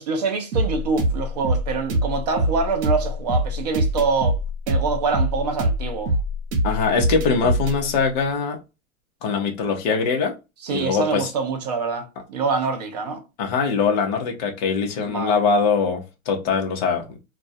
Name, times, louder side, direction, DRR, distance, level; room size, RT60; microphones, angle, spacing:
voice 1, 0.0-4.4 4.7-6.1 10.6-13.2 15.0-15.4, right 4 dB, 35° right, 0.4 m, -25 dB
sound 1, 0.5-7.8, right 1 dB, 75° right, 0.9 m, -23 dB
voice 2, 6.6-8.6 9.2-10.3 10.7-11.3 13.4-17.2, left 5 dB, 35° left, 0.6 m, -22 dB
2.3 x 2.1 x 2.5 m
supercardioid pair, 165°, 41 cm